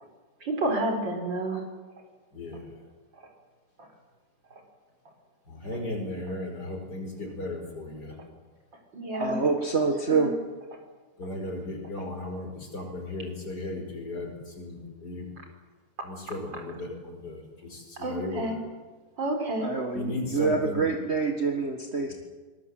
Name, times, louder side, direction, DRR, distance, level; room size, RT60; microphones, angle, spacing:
voice 1, 0.4-1.6 8.9-9.4 10.1-10.3 18.0-18.6 19.2-19.7, right 1 dB, 65° right, 3 dB, 5.0 m, -29 dB
voice 2, 2.3-2.7 5.5-8.1 11.2-15.3 16.0-18.6 19.9-20.9, left 2 dB, 50° left, 3 dB, 5.6 m, -36 dB
voice 3, 9.1-10.3 19.6-22.1, right 4 dB, 35° right, 2 dB, 1.8 m, -26 dB
24.0 x 20.0 x 7.8 m, 1.4 s
omnidirectional pair, 2.1 m